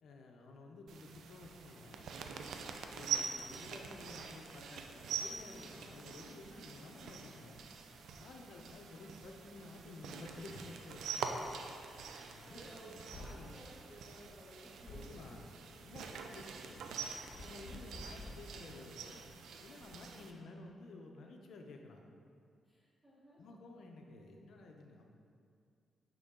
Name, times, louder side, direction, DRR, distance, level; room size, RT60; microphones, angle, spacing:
voice 1, 0.0-2.1 2.9-7.6 8.2-11.0 12.3-12.6 12.8-13.0 13.3-13.6 14.9-16.9 17.3-19.3 19.6-22.0 23.4-25.1, left 2 dB, 70° left, 2 dB, 0.8 m, -53 dB
sound 1, 0.9-20.3, right 6 dB, 80° right, 0.5 m, -45 dB
sound 2, 11.4-11.6 13.1-13.5 14.9-15.2 17.3-18.6, left 2 dB, 55° left, 1.5 m, -49 dB
voice 2, 12.0-15.5 16.1-16.6 17.6-17.8 22.6-23.4, equal, 10° right, -9 dB, 1.7 m, -57 dB
9.8 x 3.9 x 3.8 m, 2.3 s
cardioid pair, 80°, 0 cm